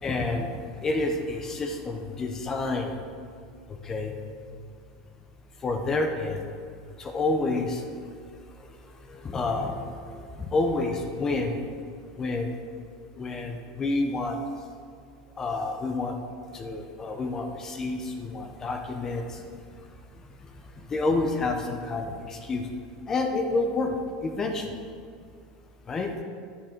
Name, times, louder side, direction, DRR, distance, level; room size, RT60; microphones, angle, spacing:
voice 1, 0.0-0.5 0.8-2.9 3.9-4.1 5.6-6.4 7.0-7.8 9.2-9.8 10.5-11.6 12.2-12.5 13.2-14.4 15.4-16.1 16.5-19.2 20.9-22.1 22.5-22.6 23.1-24.0 24.2-24.7 25.9-26.1, left 3 dB, 15° left, 5 dB, 0.6 m, -28 dB
10.0 x 8.7 x 4.4 m, 2.2 s
supercardioid pair, 175°, 3 cm